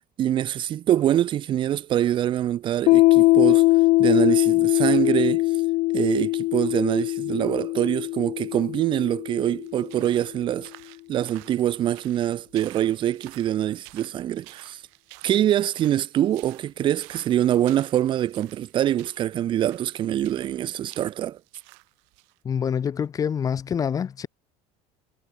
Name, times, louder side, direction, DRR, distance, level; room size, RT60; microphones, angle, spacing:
voice 1, 0.2-3.6 4.0-5.5 5.9-10.7 11.1-14.8 15.2-21.4, right 11 dB, 35° right, 1.3 m, -24 dB
Piano, 2.9-10.1, left 20 dB, 55° left, 1.2 m, -21 dB
sound 1, 9.6-22.4, right 40 dB or more, 85° right, 6.5 m, -51 dB
voice 2, 22.4-24.3, left 7 dB, 25° left, 2.1 m, -26 dB
cardioid pair, 165°, 14 cm